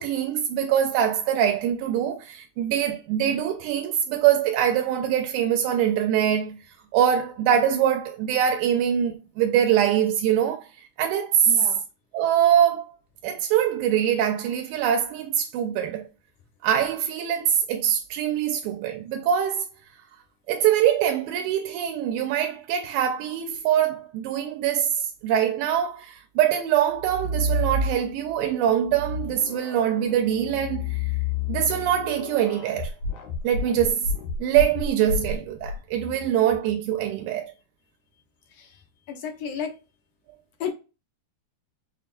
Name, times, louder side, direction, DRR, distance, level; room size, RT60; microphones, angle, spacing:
voice 1, 0.0-6.6 6.9-10.7 11.0-11.7 12.1-13.0 13.2-16.0 16.6-19.7 20.5-31.1 31.5-32.9 33.4-34.1 34.4-37.5, right 10 dB, 90° right, 2.0 m, -23 dB
voice 2, 11.5-11.8 38.6-38.7 39.1-39.8 40.6-40.7, left 7 dB, 70° left, 1.6 m, -32 dB
sound 1, 26.9-28.3 28.8-35.8, left 2 dB, 90° left, 2.7 m, -30 dB
5.9 x 2.3 x 2.5 m
omnidirectional pair, 3.4 m